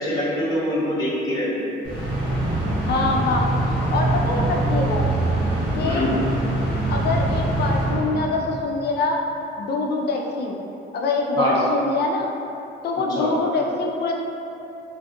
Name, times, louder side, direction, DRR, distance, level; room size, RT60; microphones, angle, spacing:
voice 1, 0.0-1.7 5.8-6.1 11.4-11.6 13.1-13.3, equal, 20° left, -12 dB, 0.7 m, -24 dB
sound 1, 1.8-8.7, right 2 dB, 45° right, 1.1 m, -23 dB
voice 2, 2.8-3.4 3.7-5.0 5.8-6.1 6.9-9.2 9.6-10.6 10.9-12.3 12.8-14.1, left 3 dB, 55° left, 0 dB, 0.4 m, -24 dB
2.5 x 2.3 x 2.6 m, 2.8 s
cardioid pair, 90°, 20 cm